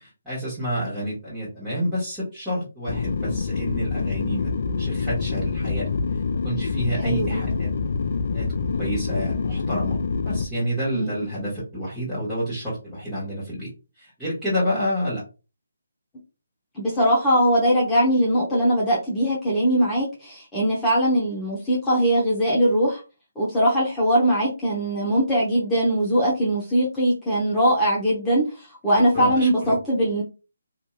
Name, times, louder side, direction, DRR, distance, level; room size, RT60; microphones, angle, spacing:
voice 1, 0.0-5.9 6.4-7.7 8.3-13.7 14.0-15.2 29.1-29.7, equal, 5° right, -14 dB, 1.3 m, -29 dB
sound 1, 2.9-10.4, left 4 dB, 55° left, 0.3 m, -26 dB
voice 2, 7.0-7.4 10.9-11.2 16.8-23.0 23.4-28.4 28.8-30.2, equal, 10° left, -7 dB, 0.8 m, -21 dB
2.7 x 2.6 x 2.2 m, 0.30 s
figure-of-eight pair, 150°, 0 cm